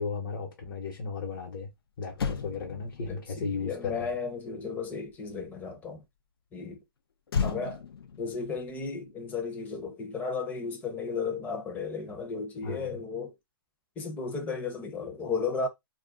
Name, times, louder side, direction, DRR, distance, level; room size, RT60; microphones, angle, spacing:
voice 1, 0.0-1.7 2.0-4.1 12.6-12.9, left 5 dB, 55° left, 1.0 m, -35 dB
Motor vehicle (road), 1.7-1.8 2.1-5.6 7.3-9.9 10.1-10.4, left 6 dB, 75° left, 0.6 m, -36 dB
voice 2, 3.0-6.0 6.5-6.8 7.4-7.8 8.2-13.3 14.0-15.7, left 4 dB, 15° left, 0.6 m, -34 dB
2.4 x 2.2 x 3.7 m
hypercardioid pair, 150°, 12 cm